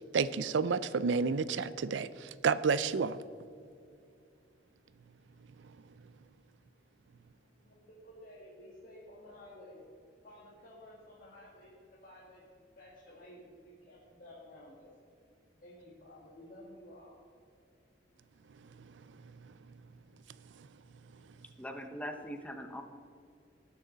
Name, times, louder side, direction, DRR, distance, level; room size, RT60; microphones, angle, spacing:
voice 1, 0.1-3.2 20.6-20.7, right 5 dB, 85° right, 15 dB, 0.4 m, -30 dB
voice 2, 7.6-9.8 10.2-12.4 12.8-14.9 15.6-17.1, left 1 dB, 50° left, -6 dB, 2.0 m, -53 dB
voice 3, 21.6-22.8, equal, 10° left, 5 dB, 0.8 m, -41 dB
18.0 x 6.3 x 4.0 m, 2.4 s
head